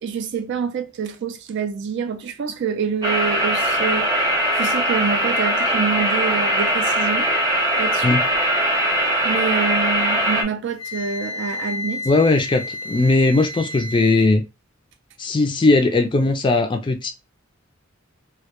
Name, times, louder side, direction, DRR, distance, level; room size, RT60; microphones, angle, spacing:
voice 1, 0.0-4.1 4.5-7.3 7.8-8.2 9.2-12.1, right 6 dB, 60° right, 0.4 m, -26 dB
sound 1, 3.0-10.4, equal, 20° right, 0.7 m, -20 dB
Wind instrument woodwind instrument, 10.8-14.3, left 2 dB, 80° left, 0.5 m, -32 dB
voice 2, 12.1-14.4 15.2-17.1, left 2 dB, 25° left, 0.3 m, -18 dB
2.2 x 2.1 x 2.8 m
head